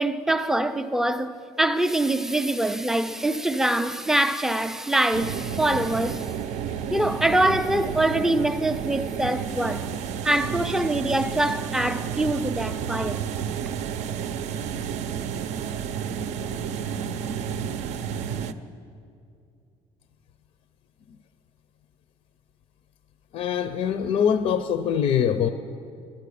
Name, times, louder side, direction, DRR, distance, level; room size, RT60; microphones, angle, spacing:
voice 1, 0.0-6.3 6.9-9.9 10.2-13.3, right 1 dB, 5° right, 0.4 m, -24 dB
sound 1, 5.1-18.5, right 7 dB, 70° right, 0.5 m, -31 dB
voice 2, 23.3-25.5, left 8 dB, 55° left, 0.5 m, -23 dB
11.5 x 10.0 x 8.4 m
cardioid pair, 155°, 12 cm